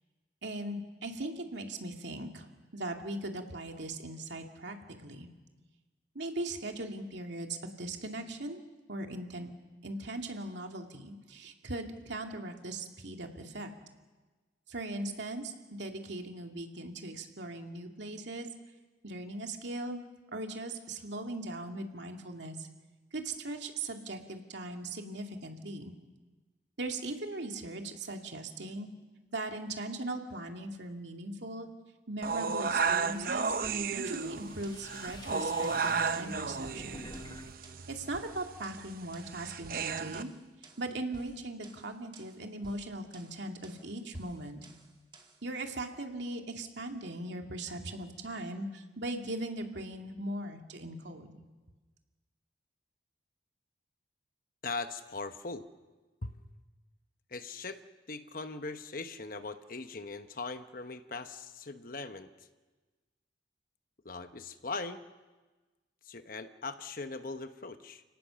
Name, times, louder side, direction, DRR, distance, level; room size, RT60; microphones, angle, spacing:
voice 1, 0.4-2.5 2.7-5.3 6.1-8.6 8.9-9.5 9.8-13.7 14.7-18.5 19.0-20.0 20.3-22.7 23.1-25.9 26.8-28.9 29.3-31.7 32.1-33.5 33.9-37.1 37.9-40.3 40.8-44.6 45.4-51.4, right 2 dB, 70° right, 3 dB, 2.4 m, -39 dB
sound 1, 32.2-40.2, right 5 dB, 50° right, 0.7 m, -33 dB
sound 2, 32.9-37.5 37.8-38.5, left 2 dB, 25° left, 1.0 m, -52 dB
sound 3, 33.6-45.5, right 2 dB, 25° right, 2.3 m, -56 dB
voice 2, 54.6-55.6 56.2-56.4 57.3-57.8 58.1-62.3 64.0-65.0 66.0-68.0, left 3 dB, 45° left, 9 dB, 1.1 m, -40 dB
30.0 x 18.0 x 7.0 m, 1.3 s
head